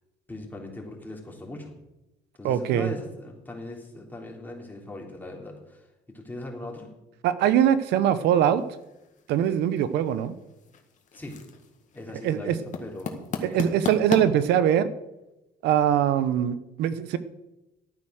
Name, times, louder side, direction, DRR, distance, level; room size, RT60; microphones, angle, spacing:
voice 1, 0.3-1.7 2.4-5.9 6.1-6.9 11.1-11.4 11.9-13.2 13.4-13.6, left 2 dB, 10° left, -1 dB, 3.5 m, -39 dB
voice 2, 2.4-2.9 7.2-8.6 9.3-10.3 12.2-12.6 13.4-14.9 15.6-17.2, right 10 dB, 80° right, 14 dB, 0.9 m, -22 dB
sound 1, 8.4-14.2, left 5 dB, 45° left, 1.8 m, -37 dB
12.5 x 9.1 x 6.4 m, 0.97 s
cardioid pair, 110°, 17 cm